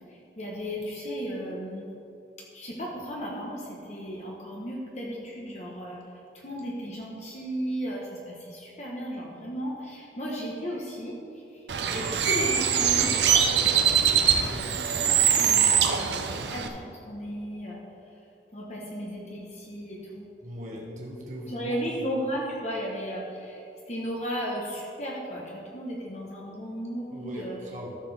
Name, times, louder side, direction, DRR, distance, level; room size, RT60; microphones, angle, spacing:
voice 1, 0.1-1.9 2.5-6.0 6.3-11.6 11.9-14.7 15.0-17.8 18.5-20.3 21.5-27.6, equal, 40° left, -3 dB, 1.1 m, -35 dB
Bird, 11.7-16.7, right 8 dB, 75° right, 0.6 m, -23 dB
voice 2, 20.4-21.8 27.1-28.0, equal, 45° right, -3 dB, 1.7 m, -39 dB
14.5 x 6.8 x 3.5 m, 2.7 s
head